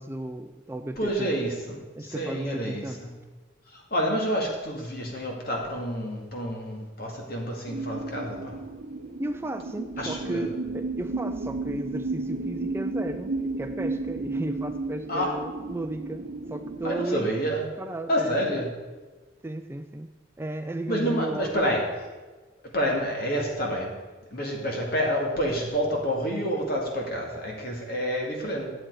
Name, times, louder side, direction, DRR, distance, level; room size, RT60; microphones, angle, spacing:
voice 1, 0.0-1.4 2.0-3.0 9.2-17.4 17.8-18.5 19.4-20.1 20.4-21.7, right 1 dB, 10° right, 7 dB, 0.3 m, -34 dB
voice 2, 1.0-3.1 3.7-8.5 10.0-10.4 15.1-15.3 16.8-17.7 18.1-18.7 20.9-21.8 22.7-23.9 24.3-28.7, equal, 50° left, 0 dB, 2.2 m, -28 dB
sound 1, 7.7-17.1, right 3 dB, 65° right, 0.7 m, -33 dB
11.5 x 7.6 x 4.7 m, 1.3 s
head